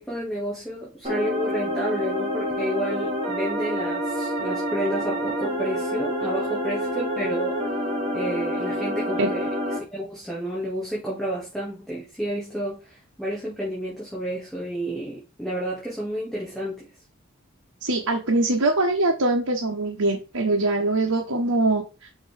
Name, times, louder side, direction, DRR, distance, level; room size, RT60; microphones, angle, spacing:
voice 1, 0.0-7.6 8.1-9.5 9.7-16.9, right 1 dB, ahead, 2.1 m, -30 dB
sound 1, 1.0-9.8, equal, 25° right, 2.6 m, -27 dB
voice 2, 17.8-22.1, right 2 dB, 85° right, 1.3 m, -23 dB
5.9 x 5.2 x 3.5 m
head